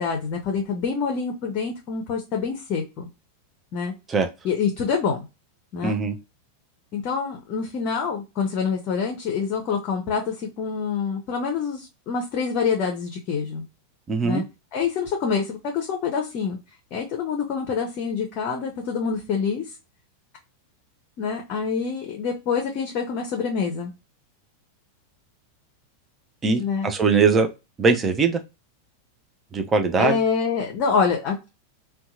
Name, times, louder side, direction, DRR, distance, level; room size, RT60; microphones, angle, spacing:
voice 1, 0.0-3.1 3.7-3.9 4.4-5.2 5.7-6.0 6.9-13.6 14.2-14.4 14.7-16.6 16.9-19.6 21.2-23.9 26.6-26.9 30.0-31.5, left 5 dB, 40° left, 3 dB, 0.6 m, -26 dB
voice 2, 5.8-6.2 14.1-14.4 26.4-27.5 27.8-28.4 29.5-30.2, right 4 dB, 20° right, 6 dB, 0.5 m, -21 dB
2.7 x 2.2 x 2.4 m, 0.26 s
figure-of-eight pair, 90°, 0 cm